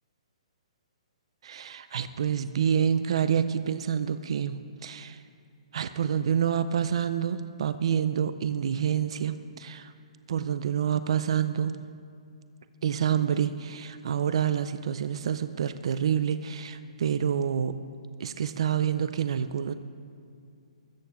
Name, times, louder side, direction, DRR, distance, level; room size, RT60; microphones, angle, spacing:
voice 1, 1.4-5.2 5.7-9.9 10.3-11.8 12.8-17.8 18.2-19.7, right 8 dB, 55° right, 12 dB, 0.5 m, -28 dB
14.0 x 7.2 x 7.6 m, 2.4 s
hypercardioid pair, 175°, 4 cm